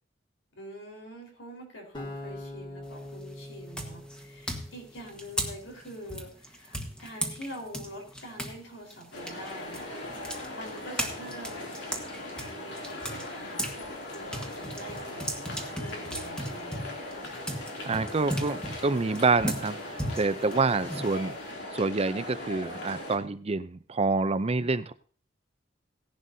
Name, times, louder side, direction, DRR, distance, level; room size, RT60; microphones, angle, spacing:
voice 1, 0.6-9.9 10.2-11.7 12.3-17.0, equal, 85° left, 1 dB, 4.3 m, -45 dB
sound 1, 1.9-5.1, left 1 dB, 25° left, 2.2 m, -42 dB
sound 2, 2.8-3.2 3.7-8.6 8.9-13.8 14.1-21.5, equal, 5° left, 1.4 m, -36 dB
sound 3, 9.1-23.2, left 1 dB, 65° left, 2.9 m, -39 dB
voice 2, 17.9-21.4 21.7-24.9, right 3 dB, 35° right, 13 dB, 0.5 m, -27 dB
17.0 x 11.0 x 2.8 m, 0.42 s
head